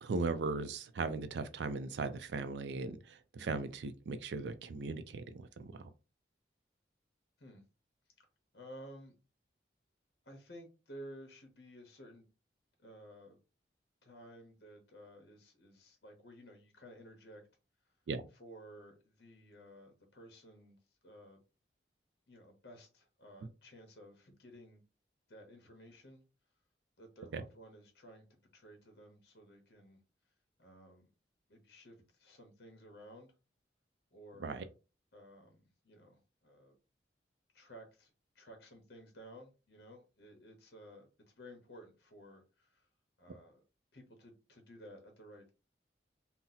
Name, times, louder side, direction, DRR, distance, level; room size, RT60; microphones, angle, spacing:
voice 1, 0.0-5.9 18.1-18.2 27.3-27.4 34.4-34.6, right 4 dB, 75° right, 0.4 m, -38 dB
voice 2, 8.5-9.1 10.2-12.2 12.8-13.4 14.0-17.4 17.8-17.9 18.3-21.4 22.3-24.8 25.3-26.2 27.0-28.3 28.5-30.0 30.6-31.1 31.5-33.3 34.1-34.7 35.1-36.7 37.5-42.9 43.2-43.6 43.9-45.5, equal, 65° left, 0.8 m, -55 dB
2.7 x 2.0 x 3.9 m
head